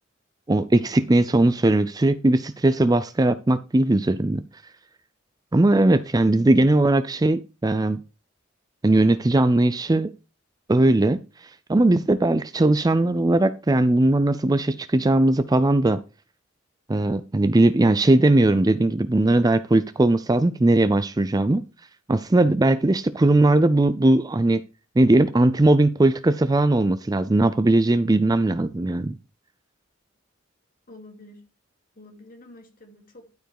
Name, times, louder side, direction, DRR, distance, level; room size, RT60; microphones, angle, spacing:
voice 1, 0.5-4.4 5.5-8.0 8.8-10.1 10.7-11.2 11.7-16.0 16.9-21.6 22.1-24.6 25.0-29.1, right 2 dB, 20° right, 0.4 m, -19 dB
voice 2, 30.9-31.4 32.0-33.4, left 1 dB, 40° left, 2.5 m, -47 dB
12.0 x 4.6 x 4.7 m
head